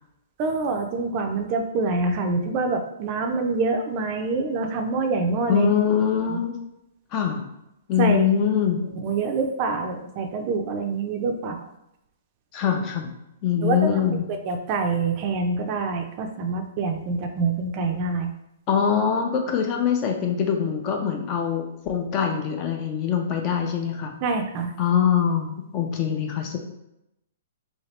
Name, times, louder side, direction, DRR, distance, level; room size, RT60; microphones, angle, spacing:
voice 1, 0.4-5.7 6.3-6.4 8.0-8.3 9.0-11.6 13.6-14.0 14.4-18.3 24.2-24.7, right 3 dB, 35° right, 5 dB, 0.4 m, -26 dB
voice 2, 5.5-6.6 7.1-7.4 7.9-8.8 12.5-13.1 13.4-14.3 18.7-24.1 24.8-26.6, left 8 dB, 35° left, 3 dB, 0.5 m, -23 dB
2.8 x 2.8 x 3.2 m, 0.84 s
hypercardioid pair, 140°, 0 cm